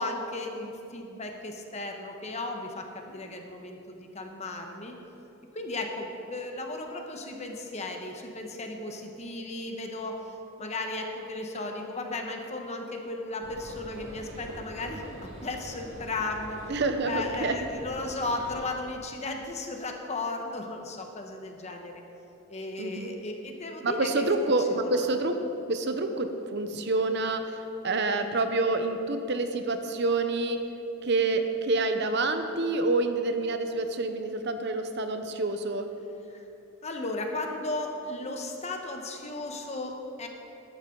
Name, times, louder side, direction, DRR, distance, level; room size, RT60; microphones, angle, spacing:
voice 1, 0.0-5.0 5.5-10.2 10.6-16.6 17.0-22.0 22.5-25.1 36.3-36.4 36.8-40.3, left 2 dB, 30° left, 3 dB, 1.1 m, -35 dB
sound 1, 13.4-18.7, right 1 dB, 80° right, 1.7 m, -44 dB
voice 2, 16.7-17.5 22.8-23.1 23.8-25.4 25.7-27.6 27.8-30.6 31.0-35.9, right 2 dB, 55° right, 7 dB, 0.8 m, -27 dB
14.5 x 11.5 x 3.9 m, 2.9 s
head